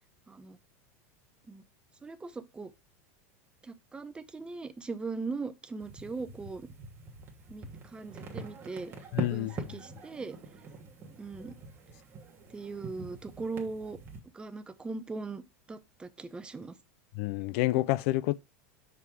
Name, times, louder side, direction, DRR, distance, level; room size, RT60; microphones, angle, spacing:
voice 1, 0.3-0.6 1.5-1.6 2.0-2.7 3.6-6.7 7.5-8.9 9.3-10.4 11.2-11.6 12.5-14.0 14.3-15.4 15.7-16.8, right 4 dB, 10° right, 0.5 m, -39 dB
sound 1, 5.8-14.2, right 4 dB, 25° right, 1.3 m, -43 dB
voice 2, 9.1-9.5 17.2-18.3, left 17 dB, 60° left, 0.4 m, -28 dB
5.9 x 3.7 x 4.4 m
supercardioid pair, 130°, 8 cm